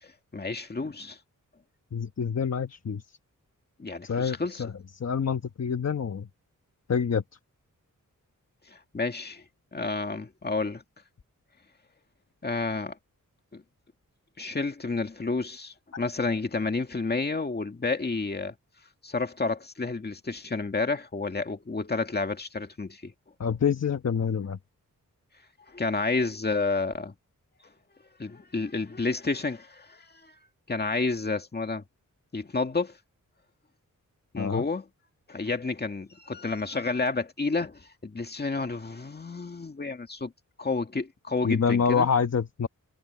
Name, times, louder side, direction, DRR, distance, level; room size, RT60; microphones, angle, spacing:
voice 1, 0.0-1.2 3.8-4.7 8.7-9.4 9.7-10.8 12.4-13.0 13.5-13.6 14.4-18.5 19.0-23.1 25.7-27.1 28.2-30.3 30.7-31.8 32.3-33.0 34.3-34.9 35.3-40.3 40.6-42.1, left 3 dB, 30° left, 2.1 m, -30 dB
voice 2, 1.9-3.0 4.0-4.7 5.0-6.3 6.9-7.2 23.4-24.6 34.4-34.6 41.4-42.7, left 6 dB, 50° left, 1.3 m, -26 dB
wide cardioid pair, 130°, 33 cm